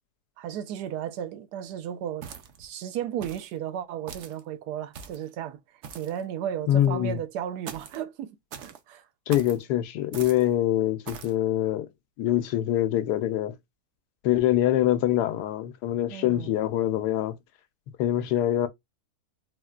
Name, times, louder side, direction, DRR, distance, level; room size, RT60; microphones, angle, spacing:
voice 1, 0.4-2.3 2.6-5.6 5.9-8.4 8.6-9.1 16.1-16.5, right 9 dB, 85° right, 1.2 m, -34 dB
sound 1, 2.2-2.7 3.2-3.5 4.1-4.4 4.9-5.3 5.8-6.2 7.7-8.0 8.5-8.8 9.3-9.6 10.1-10.5 11.1-11.4, right 7 dB, 65° right, 0.7 m, -41 dB
voice 2, 6.7-7.2 9.3-11.9 12.2-13.6 14.2-17.4 18.0-18.7, left 12 dB, 85° left, 1.2 m, -24 dB
4.1 x 2.1 x 2.3 m
omnidirectional pair, 1.7 m